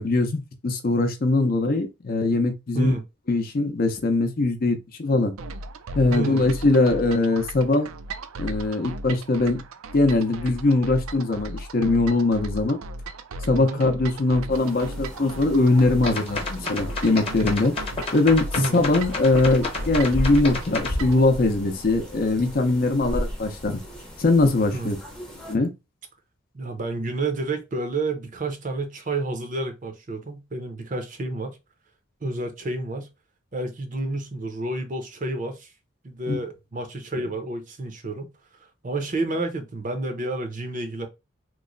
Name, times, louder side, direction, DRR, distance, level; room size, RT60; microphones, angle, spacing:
voice 1, 0.0-2.9 3.3-5.3 5.9-7.9 8.4-9.6 9.9-12.8 13.4-17.7 18.1-23.8 24.2-25.0 25.5-25.7 36.3-36.4, left 2 dB, 45° left, 0.6 m, -21 dB
sound 1, 5.4-21.2, right 1 dB, 80° right, 0.4 m, -36 dB
voice 2, 6.1-6.5 13.5-13.8 18.5-18.9 24.7-24.9 26.5-31.6 32.2-33.1 33.5-35.7 36.0-41.1, right 2 dB, 35° right, 0.6 m, -30 dB
sound 2, 14.5-25.6, equal, 5° left, 0.7 m, -35 dB
sound 3, 16.1-21.0, left 3 dB, 25° left, 1.0 m, -30 dB
3.0 x 2.1 x 3.8 m
head